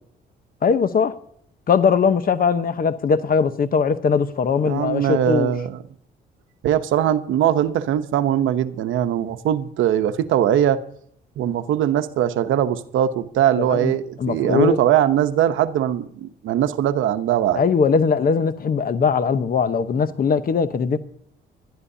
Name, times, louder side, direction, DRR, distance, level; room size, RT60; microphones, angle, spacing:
voice 1, 0.6-1.1 1.7-5.5 13.5-13.9 14.2-14.8 17.6-21.0, left 6 dB, 45° left, 0.9 m, -20 dB
voice 2, 4.6-5.8 6.6-10.8 11.4-17.6, right 10 dB, 80° right, 0.9 m, -21 dB
22.5 x 12.0 x 2.8 m
cardioid pair, 90°, 20 cm